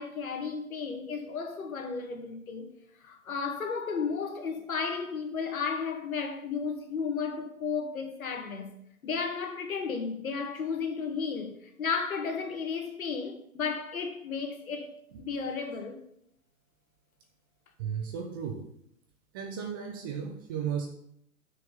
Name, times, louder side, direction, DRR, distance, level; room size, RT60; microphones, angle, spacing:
voice 1, 0.0-2.7 3.0-8.7 9.0-16.0, left 5 dB, 75° left, 2.0 m, -33 dB
voice 2, 17.8-18.6 19.3-20.9, right 7 dB, 15° right, 0.5 m, -34 dB
6.3 x 5.8 x 7.2 m
hypercardioid pair, 135°, 43 cm